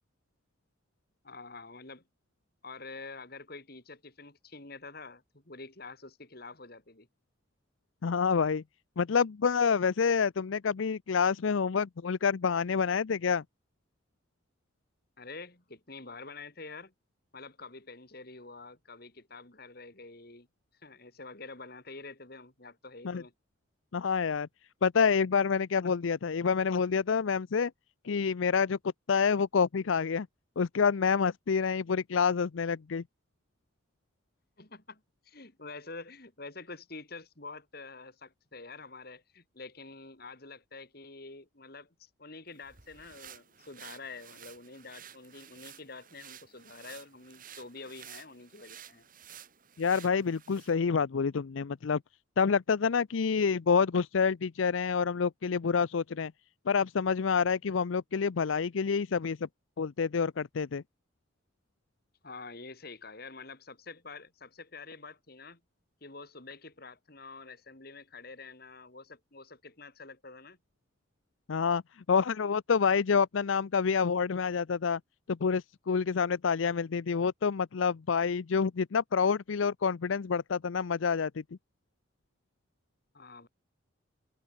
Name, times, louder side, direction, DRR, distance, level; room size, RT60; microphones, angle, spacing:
voice 1, 1.2-2.0 2.6-7.1 15.2-16.9 17.3-20.5 20.8-23.3 34.6-49.0 62.2-65.6 66.0-70.6 83.1-83.5, left 3 dB, 50° left, 3.0 m, -47 dB
voice 2, 8.0-8.6 9.0-13.4 23.0-23.2 23.9-24.5 24.8-27.7 28.0-28.8 29.1-30.3 30.6-33.0 49.8-52.0 52.4-56.3 56.7-59.4 59.8-60.8 71.5-71.8 72.1-75.0 75.3-81.4, left 6 dB, 80° left, 0.5 m, -27 dB
sound 1, 42.5-50.8, right 9 dB, 45° right, 3.7 m, -52 dB
head